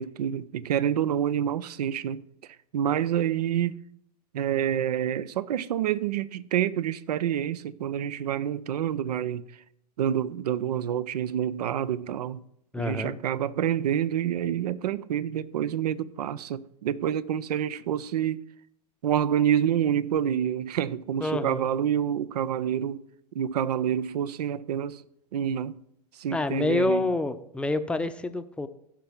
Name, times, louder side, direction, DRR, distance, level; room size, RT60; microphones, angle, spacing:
voice 1, 0.0-2.2 2.7-3.8 4.3-9.4 10.0-12.4 12.8-18.4 19.0-23.0 23.3-25.0 25.3-25.8 26.1-27.1, right 10 dB, 75° right, 0.5 m, -27 dB
voice 2, 12.7-13.2 21.2-21.7 26.3-28.7, left 2 dB, 5° left, 0.6 m, -27 dB
16.0 x 5.8 x 3.6 m
hypercardioid pair, 100°, 20 cm